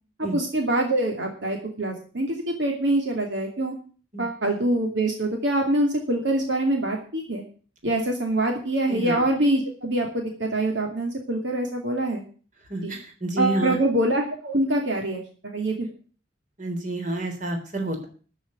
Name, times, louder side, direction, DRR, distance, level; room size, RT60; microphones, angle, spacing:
voice 1, 0.3-3.7 4.2-7.4 7.8-12.2 12.8-12.9 13.4-15.9, right 1 dB, 65° right, 2 dB, 2.6 m, -25 dB
voice 2, 8.9-9.2 12.7-13.8 16.6-18.1, right 2 dB, 40° right, 3 dB, 3.7 m, -29 dB
13.5 x 6.6 x 9.6 m, 0.41 s
head